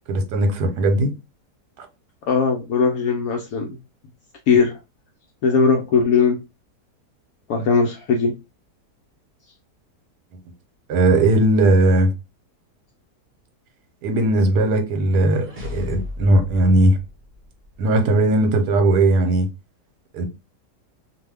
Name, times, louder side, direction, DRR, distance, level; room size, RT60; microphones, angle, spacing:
voice 1, 0.1-1.1 1.8-1.9 10.9-12.1 14.0-17.0 17.8-19.5 20.1-20.3, right 1 dB, 80° right, 1.2 m, -18 dB
voice 2, 2.3-3.7 4.5-4.8 5.4-6.4 7.5-8.3, left 5 dB, 70° left, 0.9 m, -19 dB
sound 1, 14.7-17.8, left 4 dB, 40° right, 0.8 m, -36 dB
2.7 x 2.2 x 3.2 m
omnidirectional pair, 1.7 m